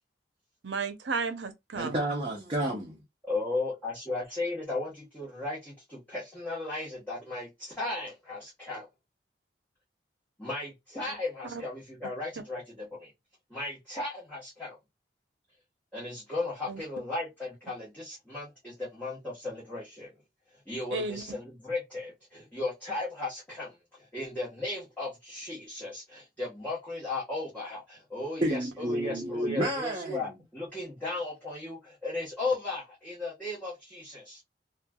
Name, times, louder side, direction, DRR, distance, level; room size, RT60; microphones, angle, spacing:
voice 1, 0.6-2.0 11.4-11.6 16.7-16.8 20.9-21.4, right 4 dB, 75° right, 0.6 m, -33 dB
voice 2, 1.8-3.0 28.4-30.3, right 1 dB, 30° right, 0.6 m, -30 dB
voice 3, 3.3-8.9 10.4-13.1 13.5-14.8 15.9-20.1 20.7-34.4, left 2 dB, 10° left, 1.1 m, -36 dB
3.1 x 2.3 x 2.2 m
head